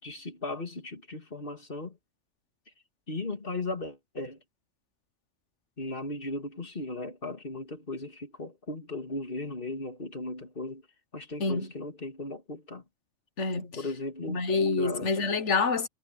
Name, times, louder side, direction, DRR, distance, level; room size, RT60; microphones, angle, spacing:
voice 1, 0.0-2.0 3.1-4.4 5.8-10.8 11.1-12.8 13.8-14.4 14.8-15.3, left 2 dB, 45° left, 3.1 m, -37 dB
voice 2, 13.4-13.8 14.3-15.9, left 4 dB, 75° left, 1.7 m, -27 dB
omnidirectional pair, 1.2 m